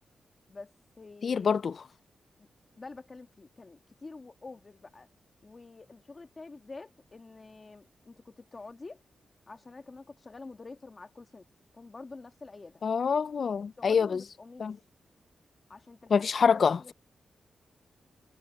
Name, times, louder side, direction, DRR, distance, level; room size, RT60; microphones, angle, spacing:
voice 1, 0.5-1.5 2.4-2.5 2.8-5.1 5.4-9.0 9.5-11.5 11.7-12.8 13.4-14.7 15.7-16.9, left 3 dB, 35° left, 1.9 m, -48 dB
voice 2, 1.2-1.8 12.8-14.2 14.6-14.8 16.1-16.9, left 6 dB, 55° left, 0.3 m, -26 dB
cardioid pair, 100°, 0 cm